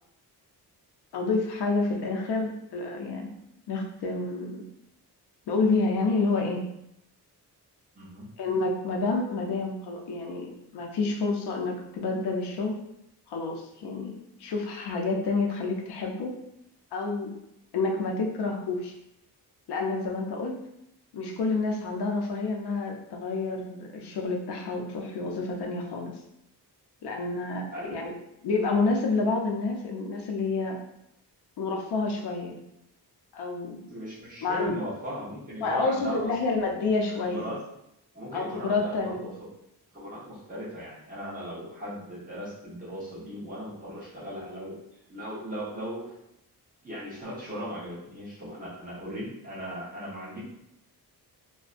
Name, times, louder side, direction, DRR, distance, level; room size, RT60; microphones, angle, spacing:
voice 1, 1.1-3.3 3.7-4.6 5.5-6.6 8.4-12.8 13.3-16.3 16.9-17.3 17.7-18.9 19.7-20.6 21.1-26.2 27.0-28.1 28.4-30.8 31.6-32.6 33.3-33.8 34.4-34.8 35.6-37.5 38.3-39.3, left 3 dB, 75° left, 1 dB, 0.6 m, -29 dB
voice 2, 7.9-8.3 27.7-28.0 33.9-36.5 37.2-37.6 38.1-39.2 39.9-44.8 45.1-46.1 46.8-50.4, equal, 20° right, -8 dB, 0.9 m, -38 dB
2.5 x 2.1 x 2.4 m, 0.79 s
wide cardioid pair, 170°, 40 cm